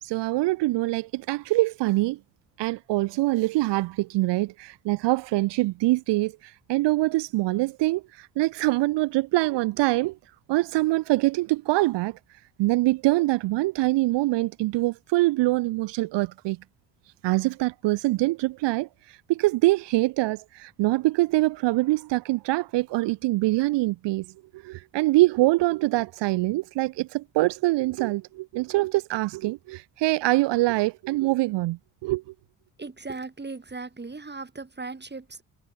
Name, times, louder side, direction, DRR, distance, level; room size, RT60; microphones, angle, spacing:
voice 1, 0.0-2.2 2.6-10.2 10.5-12.2 12.6-16.6 17.2-24.3 24.5-32.2, right 19 dB, 75° right, 1.1 m, -24 dB
voice 2, 32.8-35.4, right 3 dB, 25° right, 3.6 m, -37 dB
hypercardioid pair, 55°, 42 cm